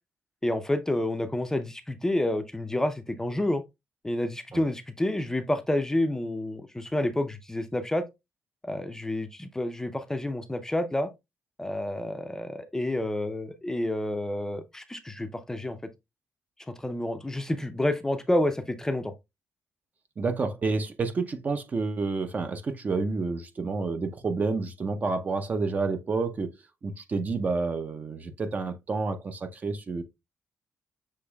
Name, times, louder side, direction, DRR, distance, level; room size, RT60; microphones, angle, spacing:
voice 1, 0.4-3.6 4.0-8.0 8.6-11.1 11.6-15.8 16.8-19.1, left 1 dB, 10° left, 0.5 m, -29 dB
voice 2, 20.2-26.5 26.8-30.0, right 4 dB, 35° right, 0.6 m, -29 dB
6.6 x 3.0 x 2.2 m
cardioid pair, 110°, 5 cm